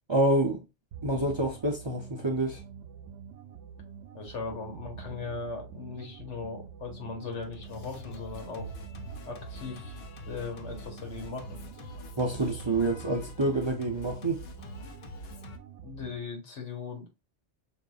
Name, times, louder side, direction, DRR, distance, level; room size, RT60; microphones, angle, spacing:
voice 1, 0.1-0.6 1.0-2.6 12.2-14.4, right 2 dB, 35° right, 0.5 m, -27 dB
sound 1, 0.9-16.3, right 7 dB, 80° right, 0.9 m, -46 dB
voice 2, 4.1-8.7 9.3-11.6 15.8-17.1, left 4 dB, 80° left, 1.5 m, -39 dB
Singing, 7.3-15.6, left 2 dB, 65° left, 0.8 m, -45 dB
6.1 x 2.5 x 2.3 m
omnidirectional pair, 1.2 m